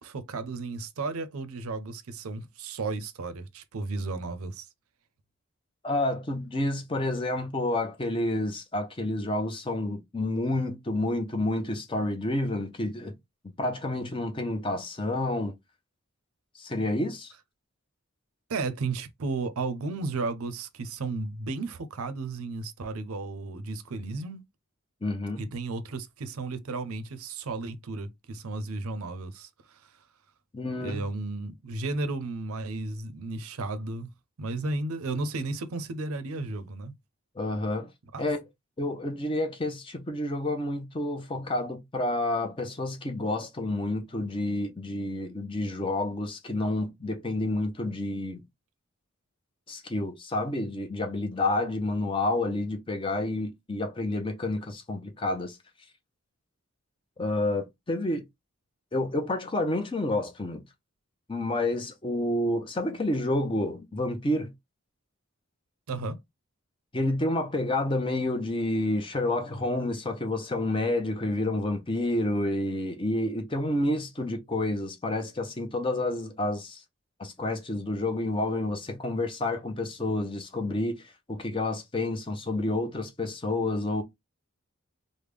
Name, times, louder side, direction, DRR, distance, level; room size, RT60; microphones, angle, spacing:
voice 1, 0.0-4.7 18.5-24.4 25.4-30.0 30.8-34.1 34.4-36.9 38.1-38.2 65.9-66.2, right 3 dB, 80° right, 0.5 m, -34 dB
voice 2, 5.8-13.1 13.4-15.5 16.6-17.3 25.0-25.4 30.5-31.0 37.4-37.9 38.2-38.4 38.8-48.4 49.7-55.6 57.2-58.2 58.9-60.6 61.3-64.5 66.9-76.8 77.2-81.0 81.3-84.0, left 2 dB, 25° left, 0.6 m, -29 dB
3.4 x 2.1 x 3.2 m
head